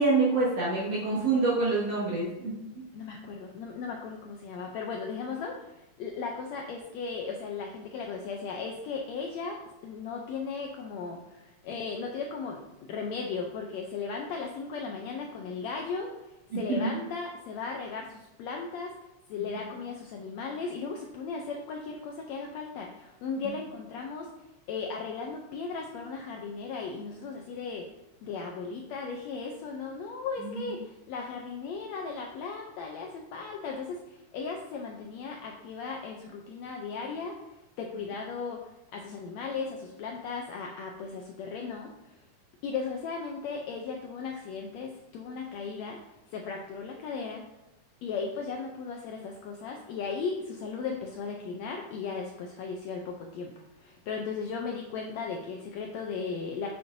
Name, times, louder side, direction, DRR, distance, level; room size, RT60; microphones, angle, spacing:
voice 1, 0.0-2.6 16.5-16.9 30.4-30.6, right 3 dB, 55° right, -7 dB, 2.3 m, -26 dB
voice 2, 2.9-16.1 16.5-18.9 19.3-24.3 24.7-27.9 28.2-37.4 37.8-38.6 38.9-41.9 42.6-46.0 46.3-47.4 48.0-56.7, left 5 dB, 80° left, 1 dB, 1.5 m, -36 dB
7.7 x 6.8 x 2.6 m, 0.93 s
omnidirectional pair, 3.8 m